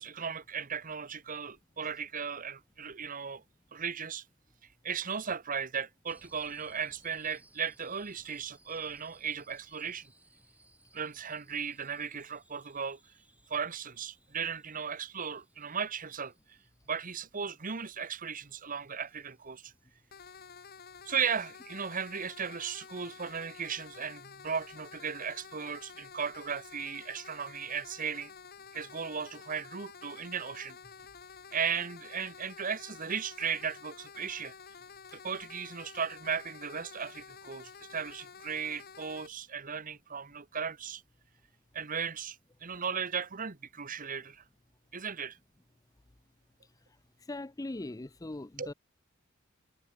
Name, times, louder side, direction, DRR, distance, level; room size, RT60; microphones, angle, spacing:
voice 1, 0.0-3.4 3.7-4.2 4.8-10.1 10.9-13.0 13.5-16.6 16.9-19.7 21.0-28.3 28.7-30.8 31.5-34.5 35.1-41.0 41.7-44.4 44.9-45.4 48.6-48.7, right 6 dB, 40° right, 1.2 m, -36 dB
sound 1, 6.1-20.3, right 2 dB, 5° right, 3.1 m, -65 dB
sound 2, 20.1-39.3, left 6 dB, 50° left, 1.3 m, -51 dB
voice 2, 47.3-48.7, left 2 dB, 15° left, 0.5 m, -40 dB
head